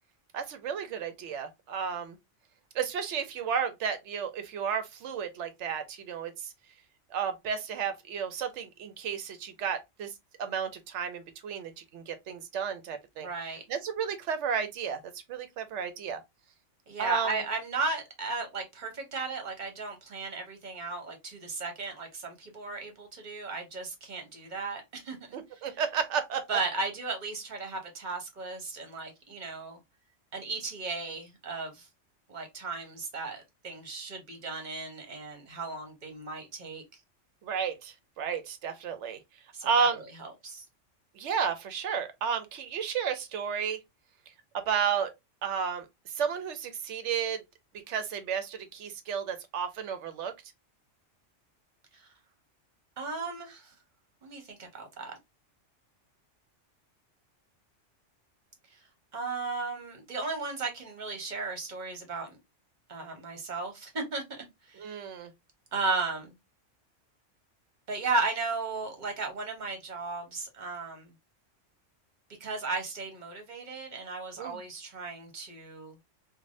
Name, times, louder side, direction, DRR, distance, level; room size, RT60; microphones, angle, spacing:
voice 1, 0.3-2.2 2.7-6.5 7.1-10.1 10.4-13.3 13.7-16.2 17.0-17.4 25.3-26.6 37.4-39.2 39.6-40.0 41.2-43.8 44.5-45.1 45.4-47.4 47.9-50.3 64.8-65.3 74.4-74.6, right 7 dB, 70° right, 0.9 m, -32 dB
voice 2, 13.2-13.6 16.9-25.2 25.5-25.7 26.5-29.8 30.3-31.9 32.3-36.8 39.5-40.6 51.9-52.1 53.0-53.7 54.2-55.2 58.7-58.8 59.1-62.4 62.9-65.1 65.7-66.3 67.9-71.1 72.4-76.0, right 3 dB, 40° right, 1.0 m, -35 dB
3.2 x 2.4 x 2.5 m
omnidirectional pair, 1.3 m